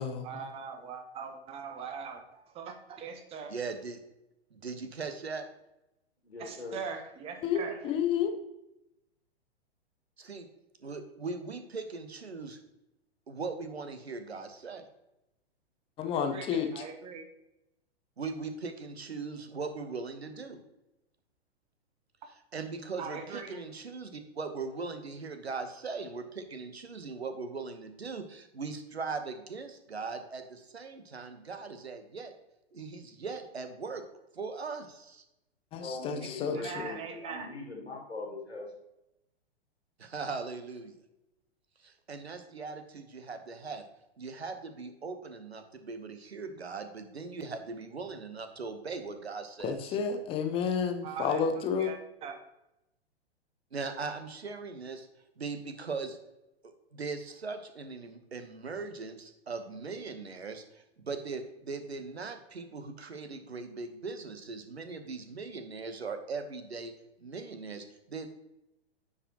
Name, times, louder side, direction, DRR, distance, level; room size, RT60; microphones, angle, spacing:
voice 1, 0.0-3.5 6.4-7.9 16.1-17.3 23.0-23.6 36.2-37.5 51.0-52.4, right 6 dB, 20° right, 7 dB, 0.8 m, -41 dB
voice 2, 3.5-4.0 4.5-5.5 10.2-10.5 10.8-12.6 13.3-14.9 18.2-20.6 22.5-32.3 32.7-34.0 34.3-35.2 40.0-40.9 41.8-43.8 44.2-50.0 53.7-55.1 55.4-56.2 56.9-66.9 67.2-68.3, right 4 dB, 75° right, 9 dB, 1.1 m, -39 dB
voice 3, 6.2-6.8 35.7-38.7, left 3 dB, 90° left, 0 dB, 2.2 m, -41 dB
voice 4, 7.4-8.3 16.0-16.8 35.7-36.7 49.6-51.9, left 7 dB, 20° left, 6 dB, 0.7 m, -30 dB
9.8 x 4.9 x 2.9 m, 0.89 s
figure-of-eight pair, 110°, 32 cm